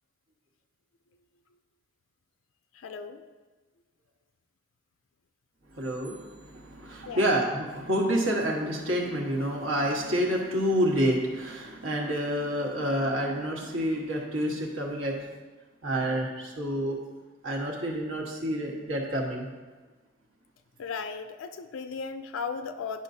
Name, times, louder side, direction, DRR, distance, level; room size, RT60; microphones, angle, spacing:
voice 1, 2.7-3.2 7.1-7.3 20.8-23.0, left 5 dB, 90° left, 8 dB, 0.4 m, -36 dB
voice 2, 5.7-15.2 15.8-17.0 17.4-19.5, equal, 80° right, -1 dB, 1.3 m, -28 dB
10.5 x 5.3 x 2.7 m, 1.3 s
head